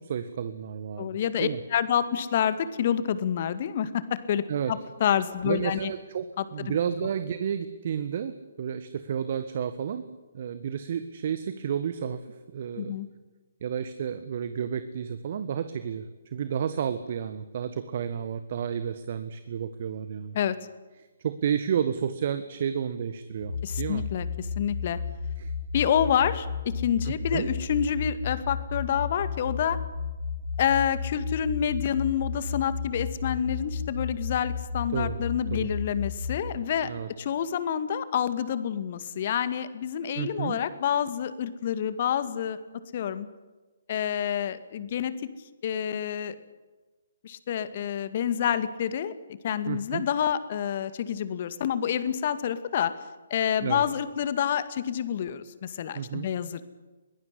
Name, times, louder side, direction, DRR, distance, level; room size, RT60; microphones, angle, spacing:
voice 1, 0.0-1.1 1.4-1.6 4.5-4.7 5.4-10.0 10.3-12.2 12.5-12.9 13.6-20.4 21.2-24.0 25.4-25.5 27.0-27.5 34.9-35.2 35.5-35.7 36.8-37.1 40.1-40.6 49.6-50.0 53.6-53.8 55.9-56.3, right 8 dB, 45° right, 11 dB, 1.6 m, -31 dB
voice 2, 1.0-5.9 6.4-6.8 12.8-13.1 20.3-20.6 23.6-25.0 25.7-29.8 30.6-36.9 37.2-42.6 42.9-43.3 43.9-45.1 45.6-46.4 47.2-49.1 49.4-52.9 53.3-56.6, left 9 dB, 45° left, 13 dB, 2.0 m, -28 dB
sound 1, 23.4-36.5, left 5 dB, 75° left, 4.1 m, -33 dB
23.0 x 18.5 x 9.9 m, 1.2 s
figure-of-eight pair, 135°, 0 cm